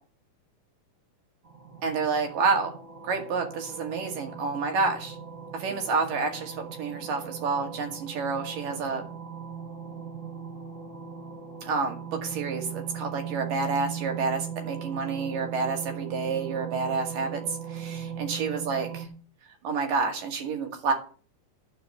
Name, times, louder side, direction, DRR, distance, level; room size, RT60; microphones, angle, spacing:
sound 1, 1.4-19.1, right 7 dB, 35° right, 0.9 m, -39 dB
voice 1, 1.8-2.7 3.0-5.2 5.5-9.0 11.6-19.0 19.6-20.9, right 4 dB, 85° right, 3 dB, 3.8 m, -29 dB
12.0 x 5.1 x 7.8 m, 0.41 s
omnidirectional pair, 3.7 m